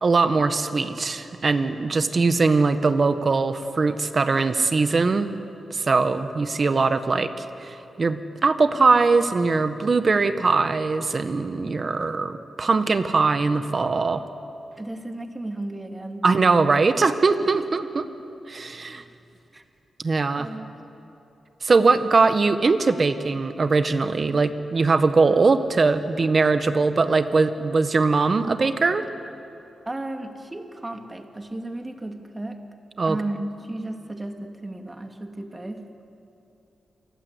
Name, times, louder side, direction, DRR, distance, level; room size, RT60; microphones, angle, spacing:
voice 1, 0.0-5.3 5.7-14.2 16.2-18.0 18.5-19.0 20.0-20.5 21.6-29.0 33.0-33.2, right 4 dB, 40° right, 10 dB, 1.5 m, -21 dB
voice 2, 14.8-16.3 17.4-17.5 19.5-19.6 20.4-20.8 29.9-32.6 33.0-35.8, right 1 dB, 20° right, 4 dB, 2.4 m, -34 dB
28.5 x 24.0 x 8.3 m, 2.8 s
cardioid pair, 100°, 0 cm